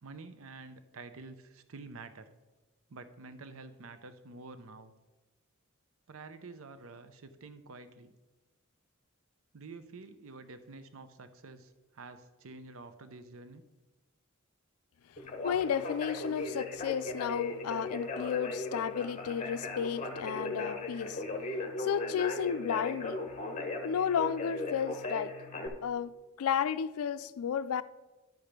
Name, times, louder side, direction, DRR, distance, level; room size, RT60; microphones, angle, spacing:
voice 1, 0.0-2.3 2.9-4.9 6.1-8.1 9.5-13.6, right 3 dB, 70° right, 0.6 m, -49 dB
Conversation, 15.2-25.7, left 2 dB, 35° left, 1.1 m, -38 dB
voice 2, 15.4-21.2 21.8-23.2 23.8-25.4 25.8-26.1 26.4-27.8, left 8 dB, 90° left, 0.4 m, -32 dB
10.5 x 5.1 x 5.8 m
head